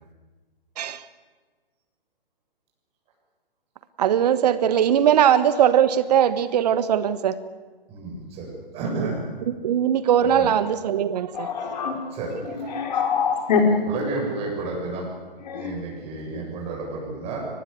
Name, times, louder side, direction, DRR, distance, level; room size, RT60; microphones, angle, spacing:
voice 1, 4.0-7.4 9.0-9.1 9.6-11.5, right 9 dB, 45° right, 13 dB, 1.3 m, -20 dB
voice 2, 7.9-9.2 10.2-10.5 12.1-12.3 13.8-15.1 15.5-17.5, right 3 dB, 20° right, -2 dB, 7.6 m, -31 dB
voice 3, 11.3-12.0 12.4-13.7 15.4-15.7, left 6 dB, 45° left, 3 dB, 5.5 m, -24 dB
24.0 x 20.0 x 8.3 m, 1.4 s
figure-of-eight pair, 130°, 29 cm